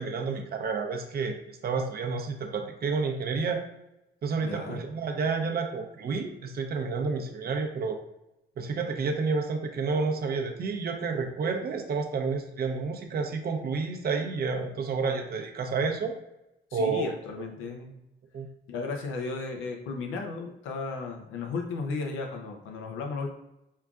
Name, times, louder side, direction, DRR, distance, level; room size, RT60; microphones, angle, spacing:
voice 1, 0.0-3.6 4.2-8.0 8.6-16.1 16.7-17.1 17.7-17.8 18.3-18.5, right 4 dB, 50° right, 4 dB, 0.6 m, -30 dB
voice 2, 4.4-4.8 16.7-18.0 18.7-23.3, left 4 dB, 85° left, 2 dB, 0.6 m, -35 dB
5.5 x 2.3 x 2.4 m, 0.90 s
cardioid pair, 90°, 20 cm